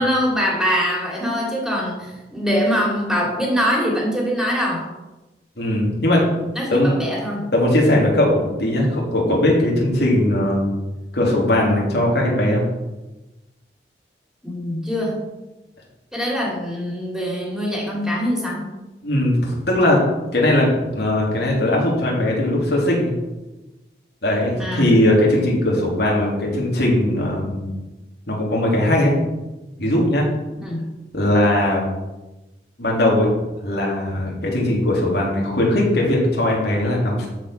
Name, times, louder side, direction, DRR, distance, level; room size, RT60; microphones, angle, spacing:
voice 1, 0.0-4.9 6.5-7.5 14.4-15.3 16.1-18.7 24.6-24.9 30.6-30.8, equal, 5° right, -3 dB, 2.8 m, -23 dB
voice 2, 5.6-6.3 6.7-7.0 7.5-10.7 11.1-12.6 19.0-20.0 20.3-23.1 24.2-27.7 28.3-29.2 29.8-30.3 31.1-31.8 32.8-33.3 33.6-37.3, left 1 dB, 65° left, -3 dB, 3.2 m, -19 dB
13.0 x 5.2 x 5.8 m, 1.0 s
head